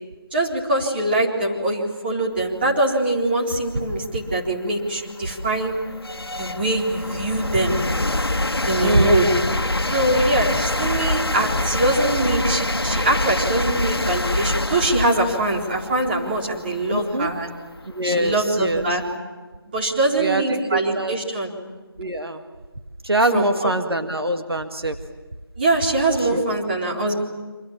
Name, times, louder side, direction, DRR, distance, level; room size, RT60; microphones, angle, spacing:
voice 1, 0.3-5.8 6.4-7.8 8.7-9.3 9.9-17.5 18.0-19.0 19.7-21.5 23.3-23.7 25.6-27.2, right 1 dB, 25° right, -2 dB, 4.0 m, -22 dB
sound 1, 3.6-3.7 4.3-19.1, left 2 dB, 75° left, 1.5 m, -26 dB
voice 2, 8.8-9.3 16.9-17.3 17.9-19.0 20.2-21.2 22.0-22.4 23.0-25.0 26.2-26.6 27.2-27.3, right 1 dB, 75° right, 6 dB, 1.9 m, -24 dB
28.0 x 27.0 x 7.5 m, 1.3 s
figure-of-eight pair, 165°, 13 cm